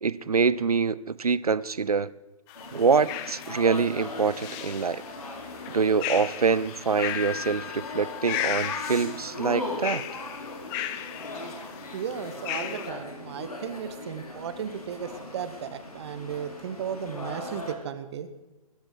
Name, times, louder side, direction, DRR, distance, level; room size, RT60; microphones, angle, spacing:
voice 1, 0.0-2.1 2.7-5.0 5.7-10.1, right 5 dB, 80° right, 19 dB, 0.6 m, -25 dB
sound 1, 2.5-17.7, left 2 dB, 80° left, 3.4 m, -39 dB
sound 2, 2.5-12.9, left 12 dB, 25° left, 0.8 m, -36 dB
voice 2, 11.9-18.3, right 8 dB, 45° right, 11 dB, 1.2 m, -35 dB
20.5 x 12.0 x 4.9 m, 1.1 s
figure-of-eight pair, 125°, 19 cm